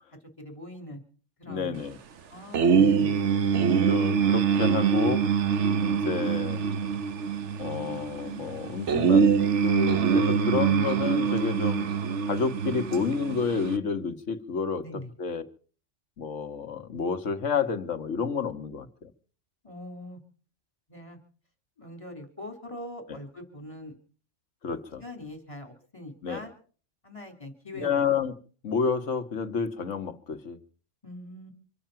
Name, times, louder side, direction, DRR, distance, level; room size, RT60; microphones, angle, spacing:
voice 1, 0.4-1.0 1.4-1.8 2.3-3.1 14.8-15.1 19.6-20.2 20.9-21.2 21.8-23.9 25.0-26.5 27.0-28.0 31.0-31.5, left 1 dB, 25° left, 4 dB, 3.9 m, -42 dB
voice 2, 1.5-2.0 3.9-5.2 5.8-6.6 7.6-11.9 12.3-14.8 15.2-15.4 16.2-19.1 23.1-23.2 24.6-25.0 26.2-26.4 27.8-28.3 28.6-30.6, left 5 dB, 90° left, 8 dB, 1.7 m, -30 dB
sound 1, 2.5-13.8, right 6 dB, 75° right, 1.3 m, -24 dB
26.0 x 9.0 x 5.8 m, 0.42 s
omnidirectional pair, 1.2 m